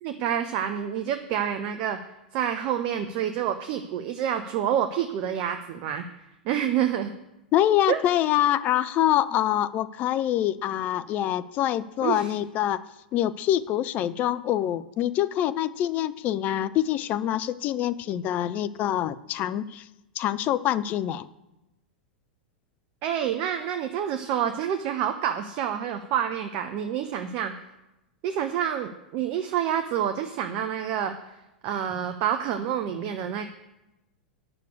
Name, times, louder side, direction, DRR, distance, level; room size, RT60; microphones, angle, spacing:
voice 1, 0.0-2.0 2.3-6.0 6.4-7.1 7.9-8.0 12.0-12.3 23.0-27.5 28.2-31.2 31.6-33.5, right 9 dB, 40° right, 7 dB, 0.7 m, -28 dB
voice 2, 7.5-12.8 13.1-19.8 20.2-21.3, left 12 dB, 35° left, 14 dB, 0.5 m, -25 dB
8.6 x 6.6 x 8.0 m, 0.95 s
figure-of-eight pair, 90°, 5 cm